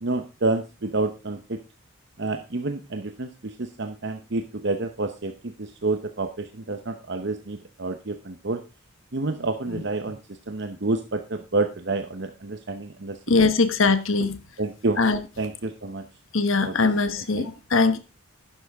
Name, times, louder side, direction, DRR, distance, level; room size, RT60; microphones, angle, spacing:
voice 1, 0.0-1.6 2.2-8.6 9.1-10.2 10.5-13.5 14.6-15.0 15.4-16.0 16.6-16.7 17.4-17.5, right 3 dB, 55° right, 0.9 m, -29 dB
voice 2, 13.3-14.4 15.0-15.2 16.3-18.0, left 3 dB, 70° left, 1.2 m, -21 dB
11.5 x 9.9 x 3.5 m
head